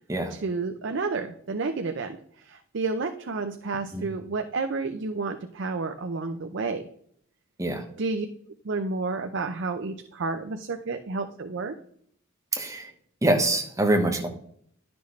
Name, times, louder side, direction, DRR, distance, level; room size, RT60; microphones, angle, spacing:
voice 1, 0.3-6.8 8.0-8.3 8.6-11.8, right 3 dB, 60° right, 6 dB, 0.6 m, -30 dB
voice 2, 12.5-12.9 13.2-14.3, right 1 dB, 15° right, 4 dB, 1.0 m, -24 dB
11.0 x 6.0 x 3.2 m, 0.66 s
head